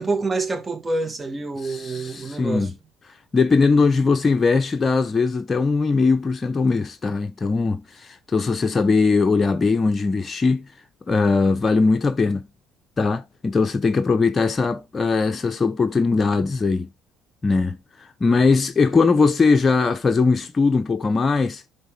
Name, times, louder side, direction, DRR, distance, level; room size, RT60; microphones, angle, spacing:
voice 1, 0.0-2.7, right 3 dB, 25° right, 2.2 m, -27 dB
voice 2, 1.6-2.7 3.3-10.7 11.1-12.4 13.0-16.9 17.4-21.6, left 4 dB, 30° left, 0.8 m, -20 dB
11.0 x 4.1 x 3.8 m
hypercardioid pair, 65°, 0 cm